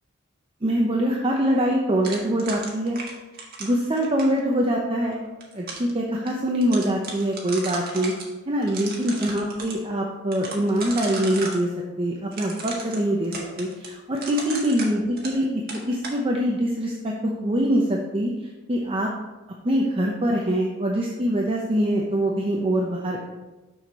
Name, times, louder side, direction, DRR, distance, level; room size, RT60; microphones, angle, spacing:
voice 1, 0.6-3.0 3.6-5.3 5.5-8.1 8.5-11.7 12.0-19.1 19.6-23.2, equal, 25° right, -1 dB, 0.7 m, -24 dB
sound 1, 2.0-4.4 5.2-5.9 6.3-6.4 6.6-8.3 8.6-9.8 10.3-11.6 12.3-15.4 15.7-16.2, right 3 dB, 50° right, 1.5 m, -35 dB
6.4 x 6.4 x 4.2 m, 1.1 s
head